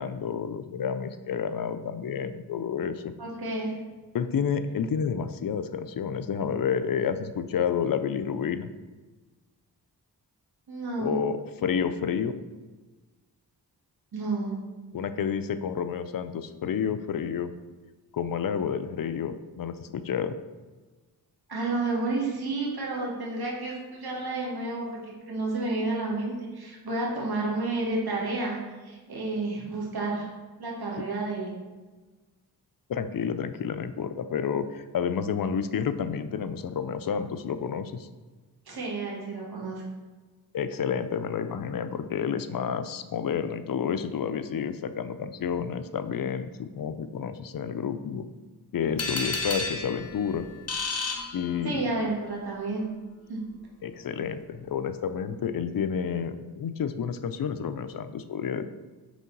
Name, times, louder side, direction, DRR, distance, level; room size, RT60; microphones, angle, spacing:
voice 1, 0.0-3.1 4.1-8.7 11.0-12.4 14.9-17.5 18.1-20.4 31.0-31.1 32.9-38.1 40.5-48.3 48.7-50.4 51.3-51.9 53.8-58.7, left 7 dB, 60° left, 11 dB, 0.5 m, -30 dB
voice 2, 3.2-3.7 10.7-11.2 14.1-14.5 21.5-28.6 28.8-30.3 30.6-31.5 38.7-39.8 51.6-52.8 53.3-53.4, right 2 dB, 70° right, -3 dB, 1.5 m, -30 dB
sound 1, 49.0-52.0, left 3 dB, 40° left, 0.8 m, -32 dB
5.1 x 3.8 x 5.2 m, 1.3 s
wide cardioid pair, 70°, 39 cm